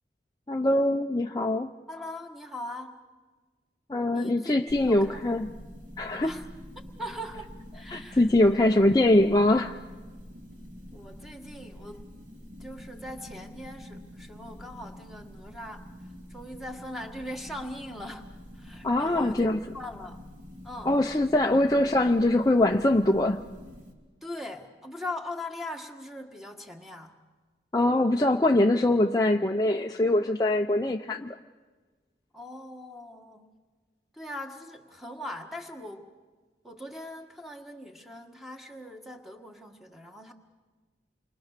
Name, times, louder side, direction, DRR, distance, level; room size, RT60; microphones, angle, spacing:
voice 1, 0.5-1.7 3.9-5.5 6.0-6.3 7.9-9.8 18.8-19.6 20.9-23.4 27.7-31.4, left 1 dB, 20° left, 3 dB, 0.7 m, -23 dB
voice 2, 1.9-3.0 4.1-5.4 6.2-6.5 7.0-8.2 10.9-12.0 12.6-15.9 16.3-19.5 19.7-20.2 20.6-21.0 24.2-27.1 32.3-33.5 34.1-36.1 36.6-40.3, left 1 dB, ahead, 3 dB, 1.7 m, -40 dB
sound 1, 4.7-23.9, equal, 45° right, 3.2 m, -46 dB
28.5 x 23.5 x 6.7 m, 1.4 s
head